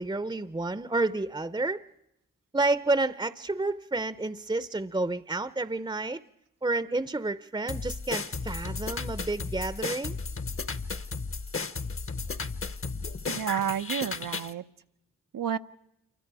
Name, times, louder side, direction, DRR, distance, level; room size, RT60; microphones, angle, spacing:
voice 1, 0.0-1.8 2.5-6.2 6.6-10.2, right 2 dB, 15° right, 0.7 m, -30 dB
sound 1, 7.7-14.5, left 4 dB, 40° left, 1.0 m, -34 dB
voice 2, 13.3-14.6 15.3-15.6, right 9 dB, 80° right, 0.8 m, -30 dB
27.5 x 24.5 x 4.8 m
cardioid pair, 45°, 33 cm